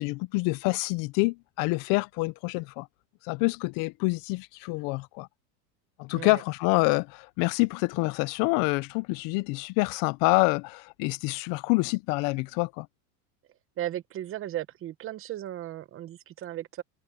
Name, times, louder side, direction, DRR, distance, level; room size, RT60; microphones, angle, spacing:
voice 1, 0.0-2.9 3.2-5.3 6.0-12.9, left 25 dB, 50° left, 0.6 m, -27 dB
voice 2, 13.8-16.8, right 12 dB, 30° right, 0.9 m, -36 dB
supercardioid pair, 140°, 43 cm